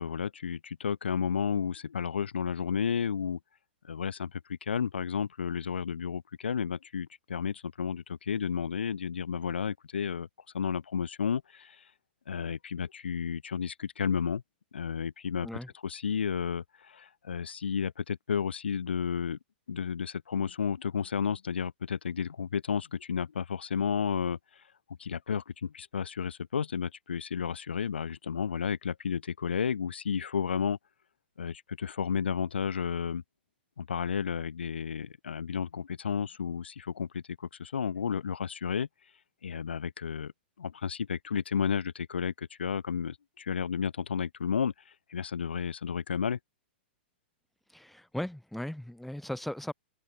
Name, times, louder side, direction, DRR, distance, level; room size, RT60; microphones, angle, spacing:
voice 1, 0.0-3.4 3.8-10.3 10.5-11.8 12.3-14.4 14.7-15.5 15.8-19.4 19.7-24.6 25.0-30.8 31.4-33.2 33.8-38.9 39.4-40.3 40.6-46.4, left 7 dB, 80° left, 2.5 m, -32 dB
voice 2, 47.7-49.7, left 1 dB, ahead, 3.7 m, -37 dB
hypercardioid pair, 110°, 6 cm